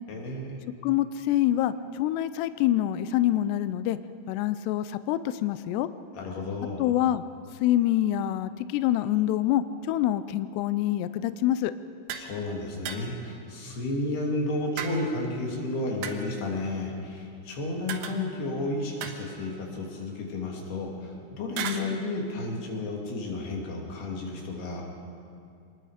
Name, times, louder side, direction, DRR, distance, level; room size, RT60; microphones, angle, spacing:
voice 1, 0.1-0.6 6.1-6.9 12.2-24.8, left 2 dB, 60° left, 0 dB, 4.5 m, -32 dB
voice 2, 0.8-4.0 4.3-5.9 6.8-7.2 7.6-11.7, left 13 dB, 90° left, 13 dB, 2.4 m, -26 dB
sound 1, 12.1-12.3 12.9-13.3 14.8-15.3 16.0-16.5 17.9-18.5 19.0-19.8 21.6-21.9, right 8 dB, 75° right, 3.3 m, -37 dB
26.0 x 20.0 x 5.1 m, 2.4 s
omnidirectional pair, 5.6 m